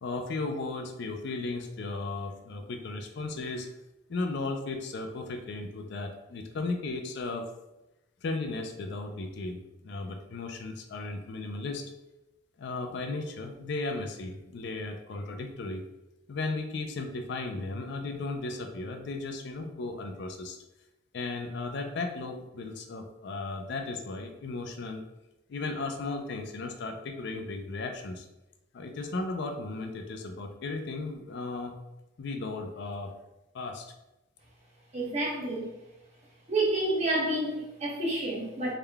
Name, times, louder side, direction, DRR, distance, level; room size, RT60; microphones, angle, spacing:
voice 1, 0.0-3.7 4.1-7.5 8.2-11.8 12.6-15.8 16.3-20.6 21.1-25.0 25.5-28.3 28.7-31.8 32.2-33.1 33.5-33.9, left 3 dB, 60° left, 5 dB, 0.4 m, -35 dB
voice 2, 34.9-35.7 36.5-38.7, right 2 dB, 35° right, -3 dB, 1.0 m, -29 dB
3.6 x 2.2 x 3.3 m, 0.95 s
head